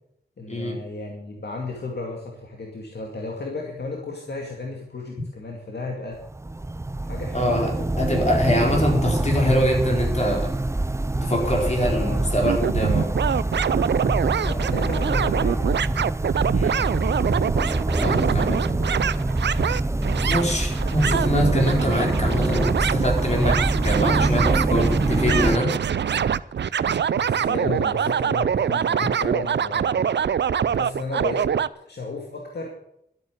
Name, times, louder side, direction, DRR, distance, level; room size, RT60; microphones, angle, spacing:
voice 1, 0.4-6.2 7.0-7.9 11.5-12.2 14.4-16.0 18.0-18.6 20.9-21.0 26.9-30.2 30.5-31.5 31.9-32.7, left 3 dB, 70° left, 0 dB, 2.3 m, -34 dB
sound 1, 6.2-25.6, right 2 dB, 15° right, 0.6 m, -25 dB
voice 2, 7.3-10.5 11.2-13.1 16.5-16.9 18.0-18.6 20.3-23.6 23.8-25.7, equal, 40° left, 0 dB, 4.4 m, -24 dB
sound 2, 12.4-31.7, right 8 dB, 85° right, 0.5 m, -24 dB
12.5 x 8.9 x 7.8 m, 0.76 s
wide cardioid pair, 90°, 18 cm